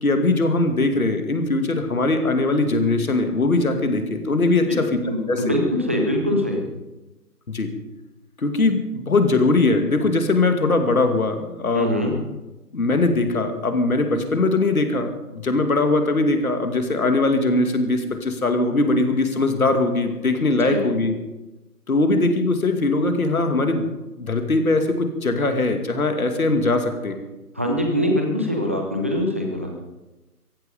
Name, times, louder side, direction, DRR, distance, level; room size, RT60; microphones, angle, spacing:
voice 1, 0.0-4.9 5.3-5.5 7.5-7.7 8.4-11.9 12.7-21.1 21.9-23.9 24.2-27.2, left 2 dB, 65° left, 6 dB, 2.5 m, -21 dB
voice 2, 5.0-6.6 11.7-12.1 20.6-20.8 27.5-29.7, left 1 dB, 10° right, 1 dB, 0.6 m, -23 dB
16.5 x 15.0 x 5.1 m, 1.0 s
figure-of-eight pair, 150°, 46 cm